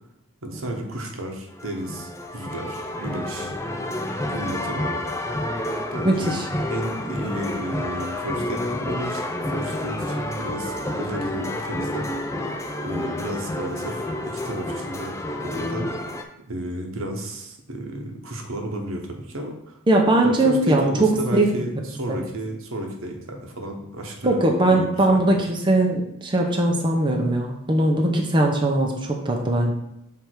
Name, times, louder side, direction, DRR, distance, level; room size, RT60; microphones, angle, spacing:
voice 1, 0.4-3.5 4.3-4.9 5.9-6.4 6.7-12.4 12.8-15.9 16.5-19.8 20.2-24.4 24.7-25.4, right 1 dB, 70° right, 3 dB, 1.1 m, -32 dB
sound 1, 1.5-16.2, left 1 dB, 15° left, 0.4 m, -29 dB
voice 2, 6.0-6.5 19.9-21.5 22.1-22.2 24.2-29.7, right 1 dB, 20° right, 0 dB, 0.7 m, -20 dB
6.5 x 3.5 x 4.5 m, 0.83 s
head